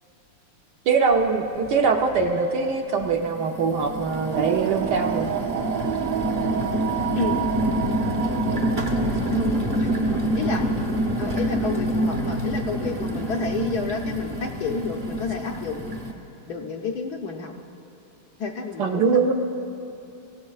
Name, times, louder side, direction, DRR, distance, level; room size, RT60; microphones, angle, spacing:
voice 1, 0.9-5.3 18.8-19.3, right 5 dB, 65° right, 3 dB, 1.2 m, -22 dB
sound 1, 1.1-1.2 1.6-2.3 2.9-16.1, equal, 35° right, 0.8 m, -27 dB
sound 2, 4.3-9.5, right 10 dB, 90° right, 0.7 m, -29 dB
voice 2, 7.2-7.5 9.3-10.6 11.2-16.0 16.5-17.5 18.4-19.3, left 4 dB, 65° left, 1 dB, 1.1 m, -30 dB
24.5 x 16.0 x 2.4 m, 2.8 s
omnidirectional pair, 2.3 m